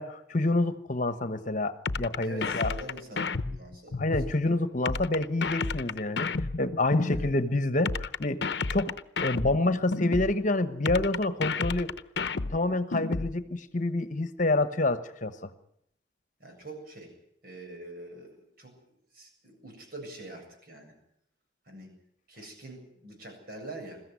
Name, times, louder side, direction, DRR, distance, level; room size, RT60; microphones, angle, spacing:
voice 1, 0.0-2.7 4.0-6.3 6.6-8.4 8.7-8.9 9.2-11.9 12.5-15.5, left 2 dB, 45° left, 11 dB, 1.3 m, -27 dB
sound 1, 1.8-4.3 4.8-7.3 7.8-10.3 10.8-13.3, left 4 dB, 70° left, 0.8 m, -31 dB
voice 2, 2.2-4.0 4.3-4.4 7.0-7.3 16.4-17.1 17.4-18.7 19.1-20.9 21.7-21.9 22.3-24.0, right 1 dB, 55° right, 2 dB, 7.8 m, -44 dB
22.0 x 15.0 x 9.7 m, 0.73 s
head